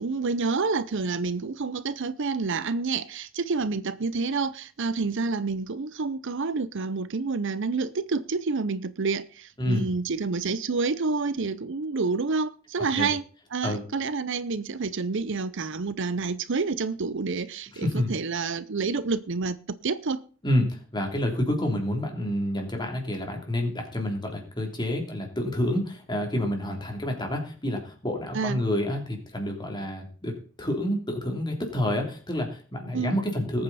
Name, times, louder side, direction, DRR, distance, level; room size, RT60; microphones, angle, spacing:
voice 1, 0.0-13.2 13.5-20.2 28.3-28.6 32.9-33.2, right 4 dB, 65° right, 0.7 m, -28 dB
voice 2, 9.6-9.9 13.0-13.1 13.6-13.8 17.7-18.1 20.4-33.6, left 1 dB, 20° left, 3.3 m, -28 dB
19.5 x 8.8 x 4.2 m
head